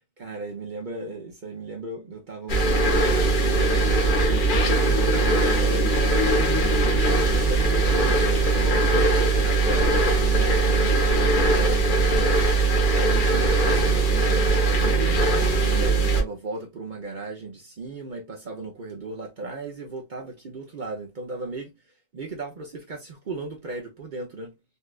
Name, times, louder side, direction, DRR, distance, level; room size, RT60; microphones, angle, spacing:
voice 1, 0.2-4.0 4.6-6.6 7.3-9.9 10.3-12.0 12.8-15.2 15.7-21.7 22.1-24.5, right 3 dB, 50° right, 0.6 m, -36 dB
sound 1, 2.5-16.2, right 2 dB, 40° left, 0.9 m, -20 dB
4.0 x 2.4 x 2.3 m
omnidirectional pair, 1.5 m